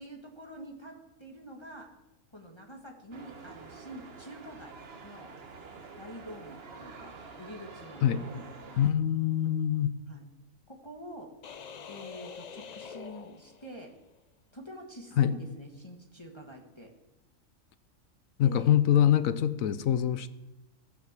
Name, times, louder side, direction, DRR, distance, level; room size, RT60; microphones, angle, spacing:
voice 1, 0.0-1.9 2.3-4.8 5.0-5.3 6.0-8.8 10.1-10.3 10.7-11.3 11.8-13.9 14.5-16.9 18.4-18.7, equal, 20° left, 0 dB, 1.6 m, -46 dB
sound 1, 3.1-8.9, right 4 dB, 45° right, 1.4 m, -48 dB
voice 2, 8.8-10.0 15.2-15.3 18.4-20.3, left 10 dB, 70° left, 14 dB, 1.1 m, -24 dB
sound 2, 11.4-14.1, left 6 dB, 90° left, 0.3 m, -46 dB
14.5 x 9.5 x 7.4 m, 0.97 s
omnidirectional pair, 1.6 m